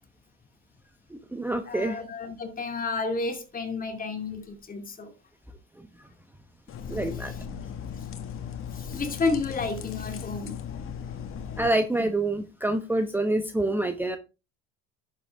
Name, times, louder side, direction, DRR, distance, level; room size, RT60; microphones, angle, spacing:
voice 1, 1.1-2.0 6.9-7.3 11.6-14.2, right 2 dB, 5° right, 1.0 m, -27 dB
voice 2, 1.7-5.1 6.8-7.4 7.9-8.1 8.7-10.6 11.1-11.2, left 3 dB, 25° left, 2.5 m, -32 dB
sound 1, 6.7-11.7, left 8 dB, 45° left, 1.8 m, -37 dB
11.0 x 7.6 x 3.5 m
supercardioid pair, 105°, 31 cm